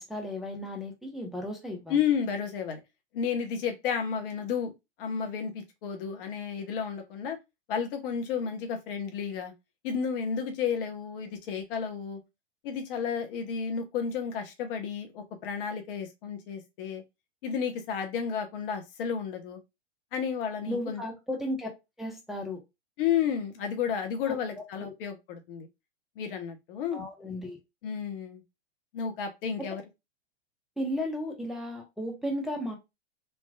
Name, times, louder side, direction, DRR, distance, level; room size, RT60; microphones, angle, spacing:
voice 1, 0.0-2.0 20.7-21.7 22.0-22.6 24.3-24.4 24.8-24.9 26.9-27.6 30.8-32.8, left 1 dB, ahead, 0.8 m, -34 dB
voice 2, 1.9-2.8 3.1-4.7 5.0-7.4 7.7-9.5 9.8-12.2 12.6-17.0 17.4-19.6 20.1-21.0 23.0-25.7 26.2-27.0 27.8-28.4 28.9-29.8, left 7 dB, 55° left, 1.1 m, -32 dB
3.3 x 2.9 x 2.3 m
hypercardioid pair, 105°, 34 cm